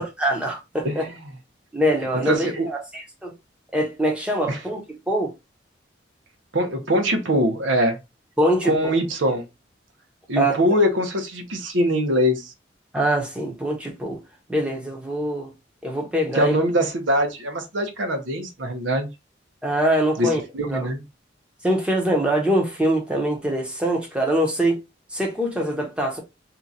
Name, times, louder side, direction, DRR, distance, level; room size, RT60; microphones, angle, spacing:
voice 1, 0.2-1.0 1.7-2.5 2.9-3.3 3.7-4.8 5.1-5.3 8.4-8.9 10.4-10.6 12.9-14.2 14.5-15.5 15.8-16.6 19.6-20.4 20.7-20.9 21.6-24.8 25.1-26.2, right 1 dB, 5° right, 0.9 m, -23 dB
voice 2, 0.8-1.2 2.3-2.7 4.5-4.6 6.5-8.0 8.6-9.5 10.3-12.5 16.3-19.1 20.2-21.0, equal, 85° right, 0.8 m, -22 dB
2.9 x 2.4 x 3.9 m
head